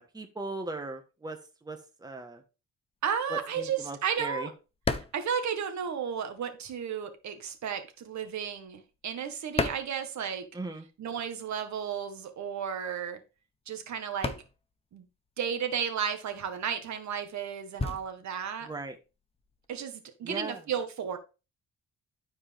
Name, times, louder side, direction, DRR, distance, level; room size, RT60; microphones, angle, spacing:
voice 1, 0.0-1.4 1.6-2.4 3.3-4.5 10.5-10.8 18.6-19.0 20.2-20.6, right 2 dB, 15° right, 1.5 m, -38 dB
sound 1, 3.0-6.4 6.6-10.8 11.0-19.8, left 3 dB, 20° left, 1.0 m, -38 dB
voice 2, 3.0-4.5 5.1-10.4 11.0-13.2 13.7-14.4 14.9-15.1 15.4-18.7 19.7-21.2, right 7 dB, 65° right, 1.8 m, -33 dB
12.0 x 4.8 x 3.6 m
cardioid pair, 90°, 30 cm